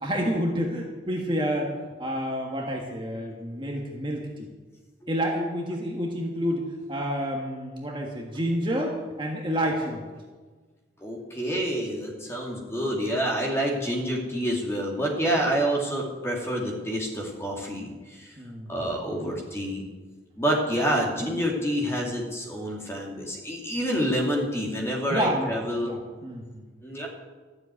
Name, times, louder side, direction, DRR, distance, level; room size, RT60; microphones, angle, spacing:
voice 1, 0.0-1.7 2.0-4.5 5.1-10.1 18.4-18.7 25.1-25.5 25.8-26.6, equal, 25° right, 0 dB, 1.5 m, -29 dB
voice 2, 11.0-18.3 18.7-19.8 20.4-25.9 26.8-27.1, equal, 15° left, -1 dB, 2.5 m, -28 dB
13.5 x 7.8 x 9.6 m, 1.4 s
head